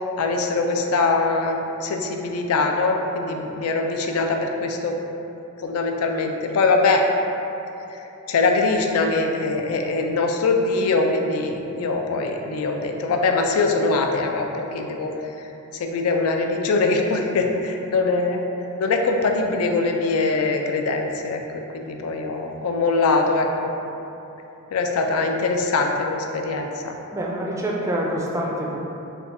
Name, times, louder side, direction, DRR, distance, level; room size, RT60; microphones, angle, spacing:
voice 1, 0.2-5.0 5.6-7.0 8.3-15.1 15.8-18.4 18.8-23.7 24.7-27.0, left 3 dB, 75° left, 3 dB, 0.4 m, -22 dB
voice 2, 27.1-28.8, right 1 dB, 15° right, -2 dB, 0.3 m, -26 dB
3.4 x 2.3 x 4.0 m, 2.9 s
head